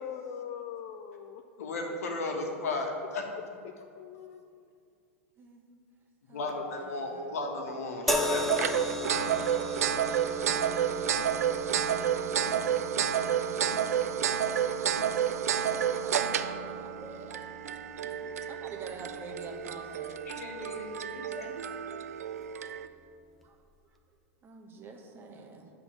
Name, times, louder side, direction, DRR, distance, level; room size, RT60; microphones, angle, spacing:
voice 1, 0.0-1.4 4.0-4.7, left 8 dB, 55° left, 6 dB, 0.4 m, -41 dB
voice 2, 1.6-3.3 6.3-8.8 20.3-21.6, left 2 dB, 80° left, 1 dB, 1.3 m, -35 dB
voice 3, 6.3-7.4 15.6-17.4 18.0-20.2 20.9-21.0 22.3-22.5 23.4-23.6 24.4-25.7, right 3 dB, 25° right, 2 dB, 1.0 m, -48 dB
sound 1, 8.1-21.4 22.3-22.5, left 1 dB, ahead, 0.6 m, -38 dB
sound 2, 8.1-22.9, right 8 dB, 85° right, 0.4 m, -30 dB
8.5 x 3.8 x 6.1 m, 2.4 s
hypercardioid pair, 110°, 8 cm